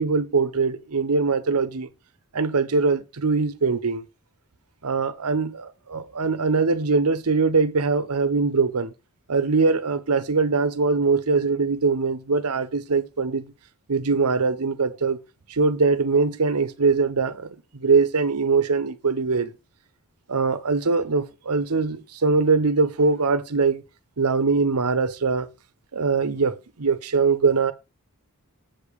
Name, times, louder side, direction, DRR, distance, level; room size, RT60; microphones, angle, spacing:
voice 1, 0.0-1.9 2.3-4.0 4.8-8.9 9.3-13.4 13.9-15.2 15.5-17.5 17.7-19.5 20.3-23.8 24.2-25.5 25.9-27.7, right 4 dB, 85° right, 0.9 m, -22 dB
7.6 x 5.1 x 5.1 m
head